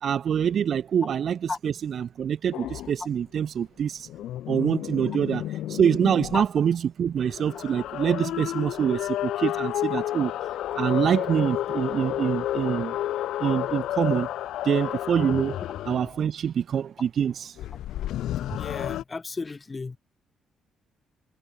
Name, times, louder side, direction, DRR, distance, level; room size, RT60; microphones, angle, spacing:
voice 1, 0.0-4.1 4.5-10.3 10.8-13.0 13.4-14.3 14.6-15.6 15.8-17.5, right 8 dB, 60° right, 1.0 m, -25 dB
sound 1, 2.5-2.9 4.0-6.5 7.2-16.2 17.6-19.0, left 13 dB, 80° left, 6.7 m, -31 dB
voice 2, 18.4-20.0, left 4 dB, 25° left, 3.7 m, -33 dB
cardioid pair, 90°, 0 cm